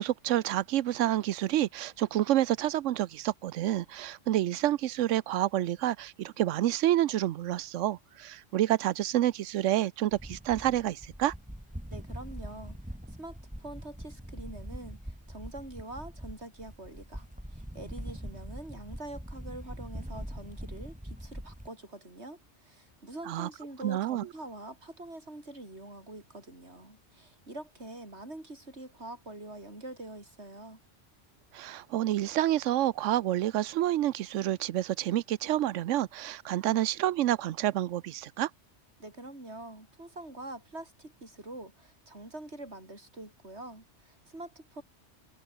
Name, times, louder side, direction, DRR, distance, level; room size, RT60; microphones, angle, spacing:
voice 1, 0.0-11.3 23.3-23.5 23.8-24.3 31.5-38.5, right 13 dB, 85° right, 1.0 m, -28 dB
sound 1, 10.1-21.7, equal, 5° right, 3.3 m, -43 dB
voice 2, 11.9-12.8 13.1-30.8 39.0-44.8, right 2 dB, 65° right, 6.5 m, -45 dB
omnidirectional pair, 1.2 m